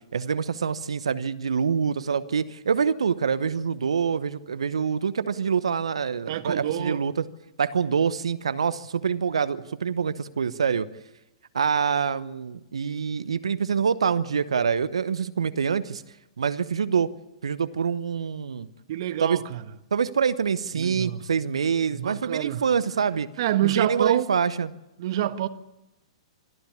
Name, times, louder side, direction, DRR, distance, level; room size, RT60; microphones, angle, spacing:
voice 1, 0.1-7.1 7.6-10.9 11.5-16.0 16.4-17.1 17.4-18.7 19.2-19.4 19.9-23.3 23.6-24.7, right 6 dB, 75° right, 0.9 m, -25 dB
voice 2, 6.3-7.0 18.9-19.6 20.7-21.2 21.9-22.6 23.4-24.3 25.0-25.5, right 13 dB, 55° right, 1.3 m, -27 dB
26.0 x 13.0 x 8.5 m
figure-of-eight pair, 110°, 3 cm